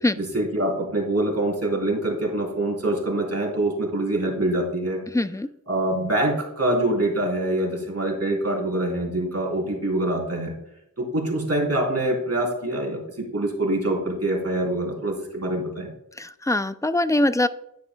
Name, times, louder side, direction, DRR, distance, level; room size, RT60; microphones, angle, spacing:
voice 1, 0.2-5.0 5.7-10.5 11.0-15.9, right 1 dB, 45° right, -2 dB, 3.3 m, -25 dB
voice 2, 5.1-5.5 16.2-17.5, left 1 dB, 10° left, 13 dB, 0.4 m, -22 dB
10.5 x 9.5 x 2.3 m, 0.80 s
wide cardioid pair, 60°, 34 cm